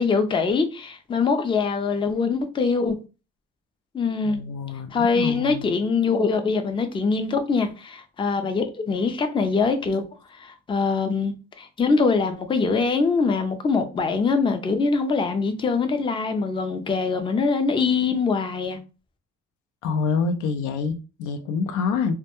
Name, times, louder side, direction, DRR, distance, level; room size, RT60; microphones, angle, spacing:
voice 1, 0.0-3.0 3.9-4.4 4.9-18.8, left 4 dB, 15° left, 0.4 m, -23 dB
voice 2, 4.3-5.8 19.8-22.1, left 5 dB, 85° left, 0.5 m, -27 dB
2.2 x 2.1 x 2.9 m
cardioid pair, 90°, 30 cm